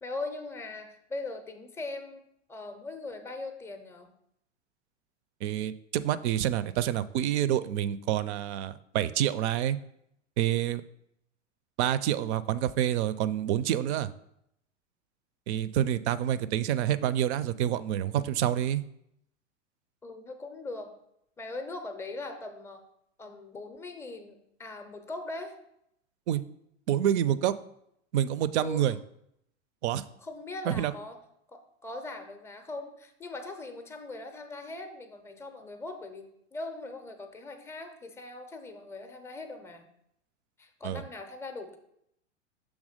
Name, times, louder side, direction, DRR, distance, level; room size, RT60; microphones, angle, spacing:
voice 1, 0.0-2.2 2.5-4.1 20.0-20.9 21.4-22.8 23.2-25.5 28.6-28.9 30.2-31.2 31.5-39.9 40.6-41.8, left 2 dB, 5° left, 6 dB, 0.5 m, -40 dB
voice 2, 5.4-9.8 10.4-10.8 11.8-14.1 15.5-18.8 26.3-26.4 26.9-27.5 28.1-29.0 29.8-30.0 30.7-30.9 40.8-41.0, right 11 dB, 65° right, 16 dB, 0.5 m, -27 dB
6.3 x 3.5 x 4.9 m, 0.76 s
hypercardioid pair, 120°, 37 cm